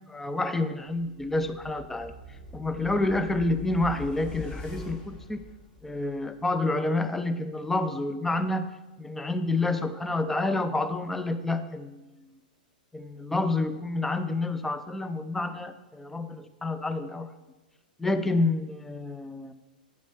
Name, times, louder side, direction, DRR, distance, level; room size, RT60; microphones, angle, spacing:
voice 1, 0.1-2.1 2.5-5.4 5.8-8.7 9.0-12.4 12.9-17.3 18.0-19.5, left 2 dB, 5° left, 10 dB, 0.4 m, -29 dB
sound 1, 1.0-6.2 6.5-6.6, left 2 dB, 30° left, 1.3 m, -43 dB
8.4 x 3.0 x 5.3 m, 1.1 s
figure-of-eight pair, 100°, 5 cm